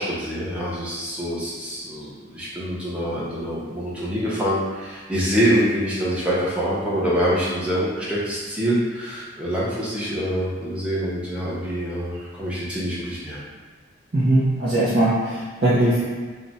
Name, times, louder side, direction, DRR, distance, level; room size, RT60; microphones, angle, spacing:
voice 1, 0.0-13.4, equal, 5° right, -8 dB, 0.6 m, -25 dB
voice 2, 14.1-16.0, right 1 dB, 50° right, -11 dB, 0.6 m, -20 dB
2.4 x 2.1 x 3.9 m, 1.5 s
head